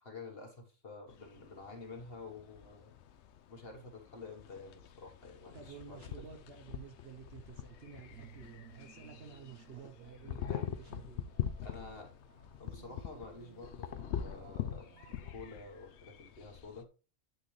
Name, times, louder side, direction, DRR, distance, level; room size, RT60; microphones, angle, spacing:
voice 1, 0.0-2.9 3.5-6.2 10.4-10.8 11.6-12.1 12.6-16.9, left 3 dB, 45° left, 1.7 m, -49 dB
sound 1, 1.1-16.8, left 9 dB, 65° left, 0.9 m, -44 dB
voice 2, 5.5-11.3, right 7 dB, 55° right, 1.2 m, -52 dB
sound 2, 7.7-15.4, right 9 dB, 80° right, 1.1 m, -59 dB
9.0 x 6.1 x 3.3 m
omnidirectional pair, 1.4 m